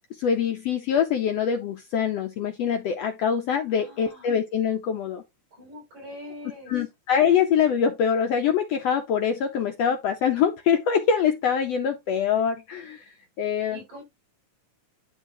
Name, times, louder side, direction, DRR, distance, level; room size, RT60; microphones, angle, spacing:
voice 1, 0.1-5.2 6.7-13.0 13.4-13.8, left 7 dB, 75° left, 1.6 m, -24 dB
voice 2, 3.7-4.3 5.5-6.8 13.7-14.0, left 1 dB, 65° right, 6.3 m, -43 dB
11.0 x 3.8 x 2.7 m
omnidirectional pair, 3.6 m